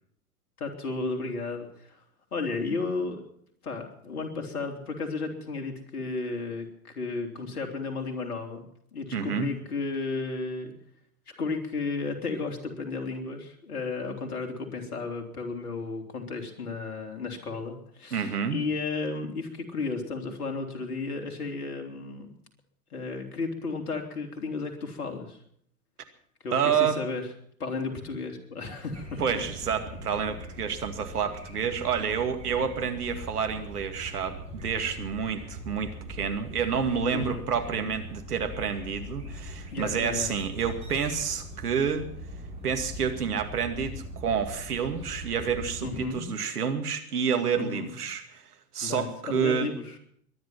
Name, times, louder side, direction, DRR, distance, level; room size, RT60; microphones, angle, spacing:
voice 1, 0.6-2.0 2.3-3.2 3.6-8.7 8.9-10.7 11.3-22.3 22.9-25.4 26.4-27.2 27.6-29.4 37.1-37.4 39.7-40.3 45.8-46.2 47.6-47.9 48.8-50.0, left 3 dB, 70° left, 4 dB, 3.5 m, -33 dB
voice 2, 9.1-9.5 18.1-18.6 26.5-27.0 29.2-42.1 42.6-49.7, right 7 dB, 70° right, 7 dB, 2.3 m, -29 dB
sound 1, 28.9-46.1, equal, 15° right, 7.3 m, -41 dB
22.5 x 11.0 x 5.9 m, 0.65 s
figure-of-eight pair, 100°, 47 cm